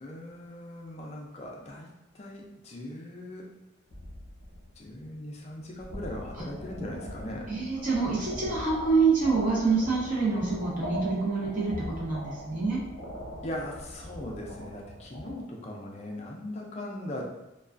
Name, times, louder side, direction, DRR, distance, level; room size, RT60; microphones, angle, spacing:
voice 1, 0.0-3.5 4.8-7.5 13.4-17.2, left 1 dB, 30° left, -1 dB, 0.3 m, -39 dB
sound 1, 3.9-5.0 5.5-15.4, equal, 55° left, 0.7 m, -41 dB
voice 2, 7.5-12.8, right 4 dB, 40° right, -6 dB, 0.7 m, -26 dB
2.3 x 2.2 x 2.4 m, 0.92 s
head